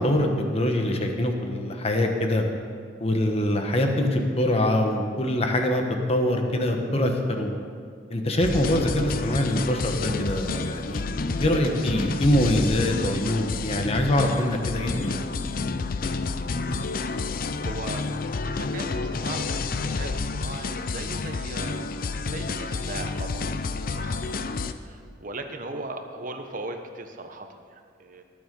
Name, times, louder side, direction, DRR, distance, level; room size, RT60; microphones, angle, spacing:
voice 1, 0.0-2.4 3.0-5.8 6.1-7.5 8.1-11.0 11.4-15.2, left 1 dB, 30° left, 3 dB, 1.2 m, -24 dB
sound 1, 8.4-24.7, left 4 dB, 50° left, 0.5 m, -29 dB
voice 2, 17.6-18.1 18.5-28.2, right 2 dB, 45° right, 5 dB, 1.0 m, -38 dB
19.0 x 7.1 x 5.3 m, 2.1 s
head